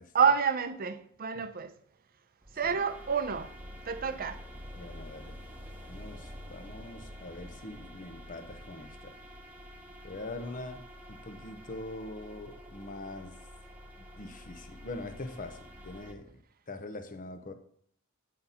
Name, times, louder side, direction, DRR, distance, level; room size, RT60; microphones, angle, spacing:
voice 1, 0.1-1.7 2.5-3.5 3.8-4.4, right 6 dB, 45° right, 0.6 m, -28 dB
sound 1, 2.4-16.1, equal, 10° right, 1.0 m, -48 dB
voice 2, 4.8-5.4 5.8-9.2 10.0-13.4 14.0-17.5, left 2 dB, 40° left, 0.8 m, -43 dB
8.8 x 4.1 x 5.6 m
head